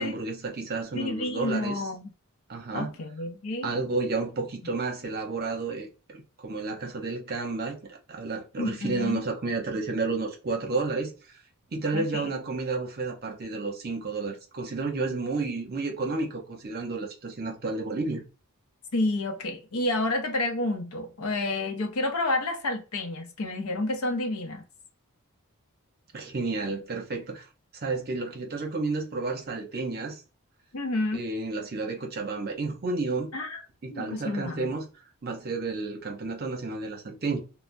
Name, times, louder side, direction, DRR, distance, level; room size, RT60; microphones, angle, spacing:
voice 1, 0.0-1.8 2.5-2.9 3.6-7.8 8.1-11.1 11.7-18.2 26.1-27.5 27.8-30.2 31.1-33.3 33.8-34.9 35.2-37.4, right 3 dB, 45° right, 0.7 m, -31 dB
voice 2, 0.9-2.1 2.7-3.7 8.6-9.2 11.9-12.3 18.9-24.6 30.7-31.2 33.3-33.6 33.9-34.7, left 2 dB, 75° left, 0.6 m, -29 dB
3.3 x 2.1 x 2.5 m
head